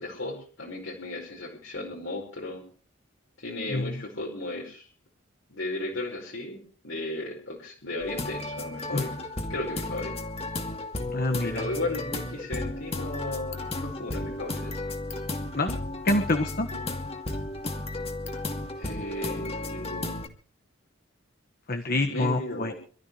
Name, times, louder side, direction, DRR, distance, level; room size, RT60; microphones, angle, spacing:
voice 1, 0.0-2.6 3.4-4.9 5.5-10.1 11.4-14.7 16.7-16.9 18.8-20.2 22.1-22.7, left 2 dB, 70° left, -1 dB, 5.2 m, -35 dB
sound 1, 8.0-20.3, left 2 dB, 30° left, 2.5 m, -34 dB
voice 2, 11.1-11.6 15.5-16.7 21.7-22.7, left 2 dB, 50° left, 6 dB, 1.6 m, -27 dB
27.0 x 13.5 x 3.2 m, 0.42 s
head